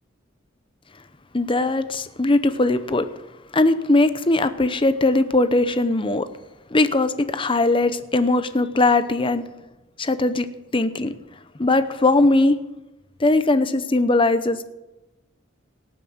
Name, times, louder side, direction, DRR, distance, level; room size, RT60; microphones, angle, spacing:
voice 1, 1.3-3.1 3.5-6.3 6.7-9.4 10.0-11.1 11.6-12.6 13.2-14.7, left 2 dB, 25° left, 12 dB, 0.8 m, -20 dB
18.0 x 7.7 x 7.9 m, 1.0 s
head